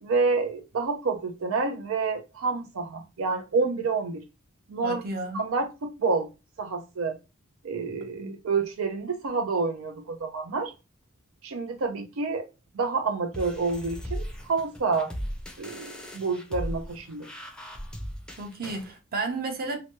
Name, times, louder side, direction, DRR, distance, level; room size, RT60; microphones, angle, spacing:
voice 1, 0.0-4.2 4.7-5.0 5.3-6.3 6.6-7.2 7.6-10.7 11.4-12.5 12.7-15.1 15.6-17.3, right 4 dB, 85° right, 0.5 m, -28 dB
voice 2, 4.8-5.5 8.2-8.3 18.4-19.8, right 3 dB, 45° right, 0.7 m, -32 dB
sound 1, 13.3-18.9, equal, 5° left, 0.5 m, -37 dB
2.8 x 2.2 x 2.9 m
head